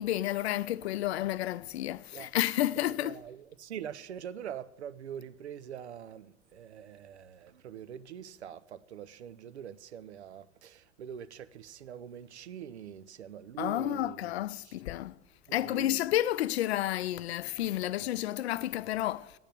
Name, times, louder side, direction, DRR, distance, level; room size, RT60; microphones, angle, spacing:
voice 1, 0.0-3.1 13.6-15.2 15.5-19.3, left 14 dB, 70° left, 0.5 m, -31 dB
voice 2, 2.8-14.8 15.5-16.0, right 9 dB, 80° right, 0.6 m, -44 dB
9.1 x 8.9 x 9.2 m
figure-of-eight pair, 70°, 33 cm